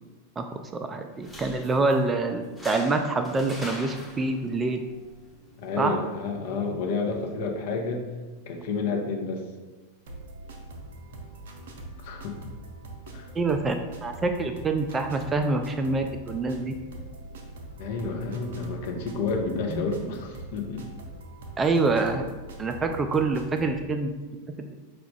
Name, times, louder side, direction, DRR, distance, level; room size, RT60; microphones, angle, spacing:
voice 1, 0.9-4.8 5.8-6.0 13.4-13.8 14.0-16.7 19.7-19.9 21.6-22.2 22.6-24.1, right 3 dB, 20° right, 6 dB, 0.3 m, -26 dB
sound 1, 1.1-8.1, left 1 dB, ahead, 0.8 m, -45 dB
voice 2, 5.6-8.0 8.5-9.5 12.0-12.3 13.1-13.3 17.8-20.8, left 4 dB, 50° left, 2 dB, 0.7 m, -30 dB
sound 2, 10.1-23.8, right 2 dB, 55° right, 0.6 m, -43 dB
5.0 x 2.3 x 3.7 m, 1.2 s
figure-of-eight pair, 90°, 0 cm